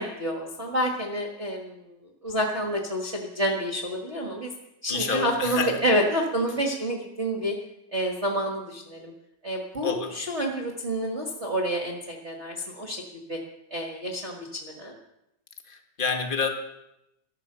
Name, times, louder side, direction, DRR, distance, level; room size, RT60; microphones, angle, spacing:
voice 1, 0.0-1.9 2.2-4.5 4.8-7.5 7.9-9.1 9.4-13.4 13.7-14.9, equal, 30° right, -1 dB, 1.5 m, -28 dB
voice 2, 4.9-5.7 9.8-10.2 15.7-16.5, left 5 dB, 45° left, 4 dB, 0.6 m, -28 dB
14.5 x 11.5 x 6.9 m, 0.87 s
omnidirectional pair, 3.5 m